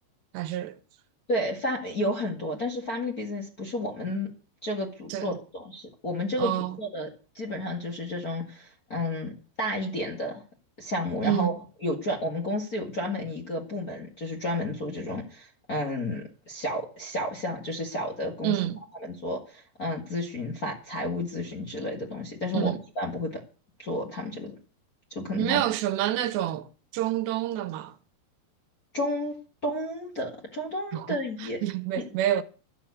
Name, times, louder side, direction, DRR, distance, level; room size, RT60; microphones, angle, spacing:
voice 1, 0.3-0.8 5.1-5.4 6.4-6.8 11.2-11.6 18.4-18.8 22.5-22.8 25.4-26.7 26.9-27.9 30.9-32.4, right 13 dB, 90° right, 3.2 m, -28 dB
voice 2, 1.3-4.3 4.6-7.1 7.3-10.4 10.8-11.5 11.8-18.6 19.0-23.4 23.8-24.5 25.1-25.6 28.9-29.4 29.6-31.6 32.0-32.1, left 1 dB, 40° left, 1.4 m, -31 dB
12.5 x 7.7 x 8.3 m
omnidirectional pair, 4.8 m